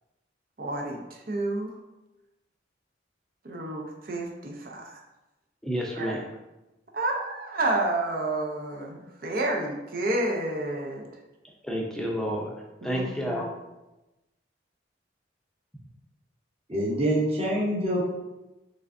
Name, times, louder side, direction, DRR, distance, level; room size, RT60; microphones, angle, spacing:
voice 1, 0.6-1.0 1.3-1.7 3.4-5.0 6.0-6.2 6.9-11.1 12.8-13.5, right 2 dB, 50° right, 0 dB, 0.6 m, -30 dB
voice 2, 5.6-6.2 11.6-12.5 12.8-13.5, equal, 5° left, -2 dB, 0.6 m, -30 dB
voice 3, 16.7-18.0, right 1 dB, 30° right, -3 dB, 1.0 m, -25 dB
5.0 x 3.3 x 2.6 m, 1.0 s
head